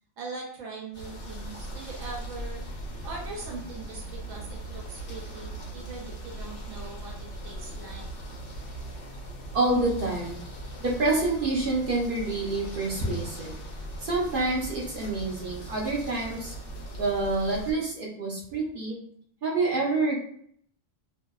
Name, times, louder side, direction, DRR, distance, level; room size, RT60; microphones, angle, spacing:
voice 1, 0.2-2.6 3.0-8.0, right 3 dB, 85° right, -2 dB, 1.0 m, -41 dB
sound 1, 0.9-17.7, right 1 dB, 70° left, 0.9 m, -39 dB
voice 2, 9.5-10.4 10.8-13.5 14.0-16.5 16.9-19.0 19.4-20.2, right 2 dB, 50° right, -3 dB, 0.7 m, -27 dB
2.7 x 2.1 x 2.2 m, 0.63 s
omnidirectional pair, 1.3 m